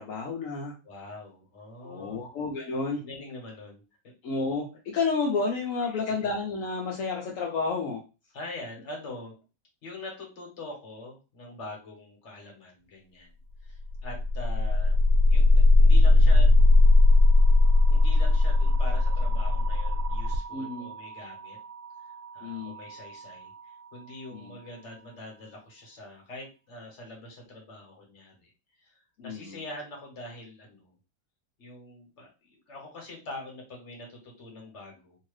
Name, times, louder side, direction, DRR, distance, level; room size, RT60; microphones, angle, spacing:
voice 1, 0.0-0.7 1.8-3.0 4.2-8.0 20.5-20.9 22.4-22.7 24.3-24.5 29.2-29.6, left 4 dB, 65° left, -1 dB, 0.8 m, -30 dB
voice 2, 0.8-2.3 3.0-4.1 5.9-6.1 8.3-9.3 9.8-13.3 13.6-14.9 15.3-16.5 17.9-21.6 22.3-28.5 28.8-30.9 31.6-35.2, left 2 dB, 45° left, 0 dB, 1.3 m, -44 dB
sound 1, 13.8-23.7, left 2 dB, 75° right, 1.1 m, -20 dB
2.8 x 2.7 x 3.2 m, 0.30 s
omnidirectional pair, 1.9 m